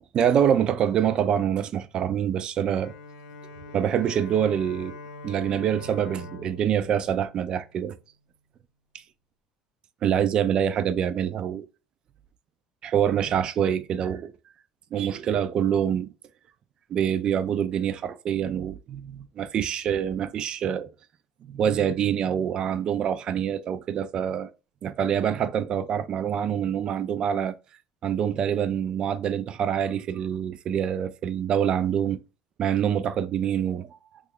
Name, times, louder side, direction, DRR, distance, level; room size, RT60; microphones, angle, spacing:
voice 1, 0.1-2.9 3.7-5.0 5.2-8.0 10.0-11.7 12.8-14.3 14.9-16.1 16.9-20.9 21.5-24.5 24.8-27.5 28.0-32.2 32.6-34.0, right 9 dB, 45° right, 0.4 m, -25 dB
Bowed string instrument, 2.5-8.0, left 2 dB, 70° left, 0.7 m, -44 dB
2.9 x 2.3 x 3.6 m
supercardioid pair, 90°, 2 cm